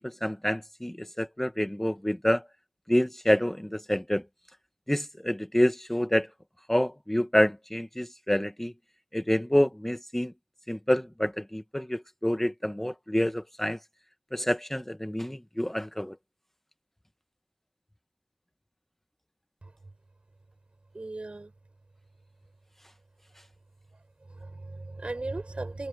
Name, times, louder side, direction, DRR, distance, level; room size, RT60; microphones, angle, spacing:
voice 1, 0.0-2.4 2.9-4.2 4.9-6.3 6.7-8.7 9.1-10.3 10.7-13.8 14.3-16.2, equal, 10° left, 1.2 m, -27 dB
voice 2, 20.9-21.5 24.3-25.9, right 2 dB, 50° right, 5.5 m, -37 dB
wide cardioid pair, 45°, 2 cm